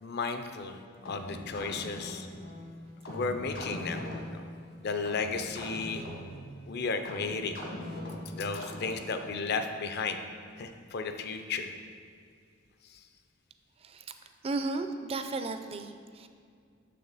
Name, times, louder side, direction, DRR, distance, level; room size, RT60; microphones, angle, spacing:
voice 1, 0.0-2.3 3.1-4.5 4.8-6.0 6.7-7.6 8.3-10.2 10.6-11.7 12.9-13.0, left 4 dB, 55° left, 7 dB, 0.5 m, -34 dB
sound 1, 1.0-9.3, left 1 dB, 75° left, 1.6 m, -41 dB
voice 2, 13.8-14.1 14.4-16.3, right 3 dB, 30° right, 8 dB, 0.4 m, -34 dB
6.7 x 6.6 x 4.1 m, 2.2 s
head